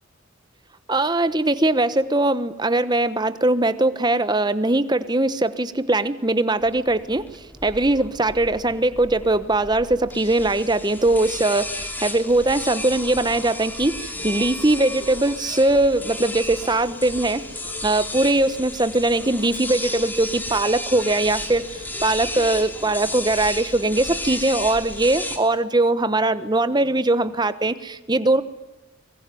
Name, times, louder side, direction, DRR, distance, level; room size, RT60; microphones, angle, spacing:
voice 1, 0.9-17.4 17.8-21.6 22.0-28.4, right 2 dB, 20° right, 13 dB, 1.1 m, -21 dB
sound 1, 6.6-25.4, left 1 dB, 10° left, 2.7 m, -33 dB
sound 2, 13.9-15.4 15.9-18.7 19.2-19.4 19.9-20.2 20.5-20.8 21.1-21.4 21.7-22.0, left 2 dB, 35° left, 4.7 m, -43 dB
23.5 x 22.5 x 9.3 m, 1.0 s
head